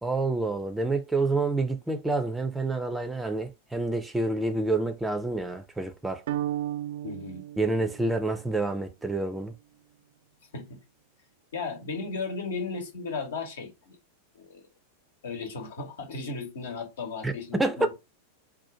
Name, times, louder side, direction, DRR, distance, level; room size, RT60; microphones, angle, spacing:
voice 1, 0.0-6.2 7.6-9.5 17.2-17.9, right 2 dB, 10° right, 0.6 m, -28 dB
sound 1, 6.3-8.6, right 12 dB, 55° right, 0.4 m, -34 dB
voice 2, 7.0-7.4 10.5-10.8 11.5-14.0 14.3-14.7 15.2-17.9, left 4 dB, 65° left, 1.0 m, -35 dB
4.2 x 2.4 x 4.6 m
figure-of-eight pair, 90°, 0 cm